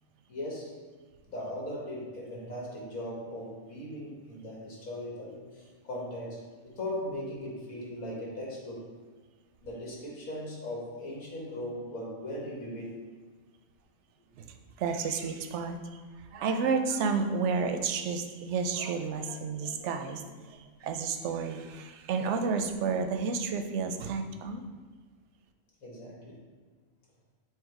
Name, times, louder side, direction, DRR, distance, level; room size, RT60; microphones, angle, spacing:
voice 1, 0.3-0.7 1.3-8.9 9.6-13.0 25.8-26.4, left 1 dB, 85° left, -4 dB, 1.9 m, -39 dB
voice 2, 14.8-16.0 16.3-24.6, right 5 dB, 65° right, 6 dB, 0.8 m, -31 dB
7.4 x 2.7 x 4.7 m, 1.4 s
omnidirectional pair, 1.4 m